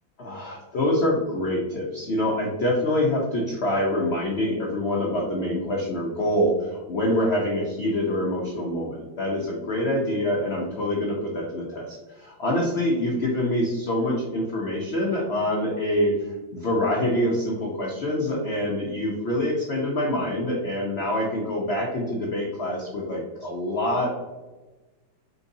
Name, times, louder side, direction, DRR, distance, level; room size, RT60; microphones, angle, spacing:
voice 1, 0.2-24.1, left 1 dB, 80° left, -2 dB, 0.5 m, -25 dB
4.4 x 3.9 x 2.7 m, 1.2 s
omnidirectional pair, 2.1 m